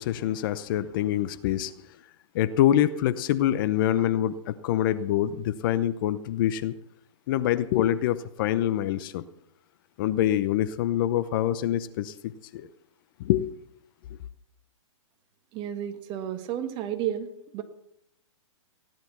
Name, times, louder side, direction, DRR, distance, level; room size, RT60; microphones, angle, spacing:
voice 1, 0.0-1.7 2.3-6.8 7.3-9.2 10.0-12.7 13.2-13.5, left 12 dB, 40° left, 0.8 m, -25 dB
voice 2, 15.5-17.6, right 10 dB, 30° right, 1.4 m, -32 dB
16.5 x 10.5 x 6.0 m
hypercardioid pair, 135°, 17 cm